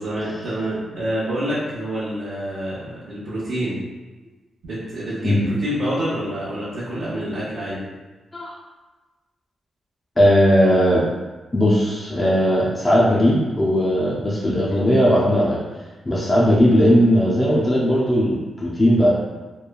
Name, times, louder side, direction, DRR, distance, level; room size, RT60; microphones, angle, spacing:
voice 1, 0.0-3.8 4.6-7.8, equal, 75° right, -11 dB, 0.7 m, -27 dB
voice 2, 10.2-11.1 11.5-15.6 16.0-19.1, equal, 20° left, -6 dB, 0.4 m, -17 dB
3.0 x 2.1 x 2.2 m, 1.2 s
cardioid pair, 115°, 0 cm